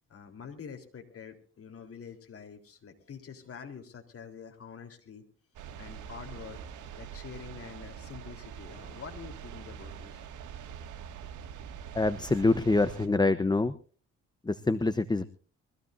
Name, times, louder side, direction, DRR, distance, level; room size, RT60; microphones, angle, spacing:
voice 1, 0.1-5.2 5.8-6.6 6.9-10.2 11.2-11.3, left 6 dB, 50° left, 5 dB, 3.8 m, -46 dB
sound 1, 5.5-13.1, right 8 dB, 85° right, 2.2 m, -44 dB
voice 2, 11.9-13.7 14.5-15.3, left 2 dB, 15° left, 12 dB, 0.9 m, -25 dB
23.5 x 16.0 x 2.7 m, 0.40 s
cardioid pair, 90°, 30 cm